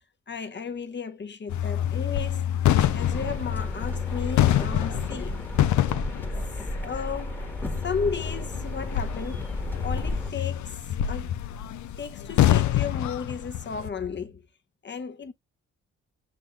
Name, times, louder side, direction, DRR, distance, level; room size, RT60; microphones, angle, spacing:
voice 1, 0.3-2.5 2.9-5.4 6.7-9.5 9.8-10.8 11.1-11.4 12.0-14.4 14.8-15.3, left 5 dB, 35° left, 1.0 m, -34 dB
sound 1, 1.5-13.9, left 12 dB, 70° left, 0.5 m, -27 dB
sound 2, 2.8-10.3, left 1 dB, 5° left, 1.3 m, -33 dB
6.3 x 3.6 x 2.3 m
supercardioid pair, 50°, 30 cm